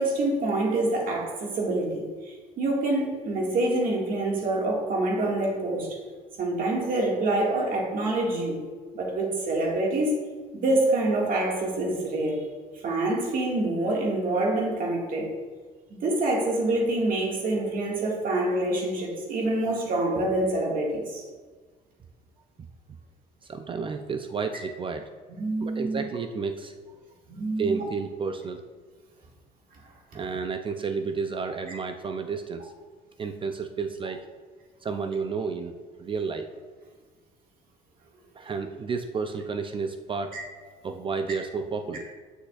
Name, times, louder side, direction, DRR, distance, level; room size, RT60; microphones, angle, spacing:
voice 1, 0.0-5.9 6.4-8.6 8.9-10.2 10.5-12.4 12.8-15.3 15.9-21.2 25.4-26.0 27.3-27.8 40.3-40.4, right 2 dB, 55° right, -2 dB, 2.0 m, -26 dB
voice 2, 23.5-25.0 25.6-26.7 27.6-28.6 30.1-32.7 33.2-34.2 34.8-36.5 38.3-40.4 40.8-42.1, right 5 dB, 30° right, 7 dB, 0.4 m, -31 dB
10.0 x 6.4 x 2.4 m, 1.4 s
cardioid pair, 110°, 17 cm